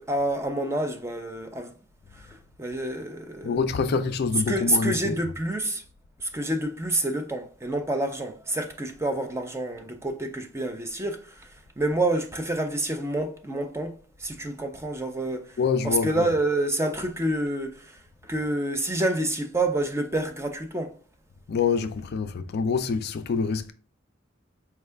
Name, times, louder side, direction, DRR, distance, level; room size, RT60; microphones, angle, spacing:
voice 1, 0.0-1.7 2.2-3.6 4.5-5.8 6.2-11.5 11.8-15.6 15.8-21.0, right 1 dB, 15° right, 0.5 m, -28 dB
voice 2, 3.4-5.4 15.6-16.3 21.5-23.7, left 5 dB, 55° left, 0.4 m, -26 dB
4.4 x 2.3 x 3.3 m
head